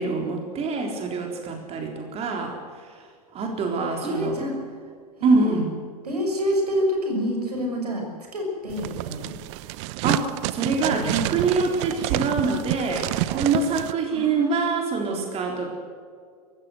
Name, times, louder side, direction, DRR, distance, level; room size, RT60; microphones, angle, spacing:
voice 1, 0.0-2.6 3.3-4.5 5.2-5.7 10.0-15.7, right 4 dB, 30° right, 2 dB, 3.9 m, -25 dB
voice 2, 4.0-4.5 5.2-5.6 6.0-8.1 8.3-9.3 11.2-11.3 14.1-14.8, equal, 80° right, 2 dB, 6.2 m, -27 dB
sound 1, 8.7-13.9, right 16 dB, 50° right, 0.8 m, -28 dB
23.0 x 16.0 x 7.9 m, 2.1 s
figure-of-eight pair, 90°, 20 cm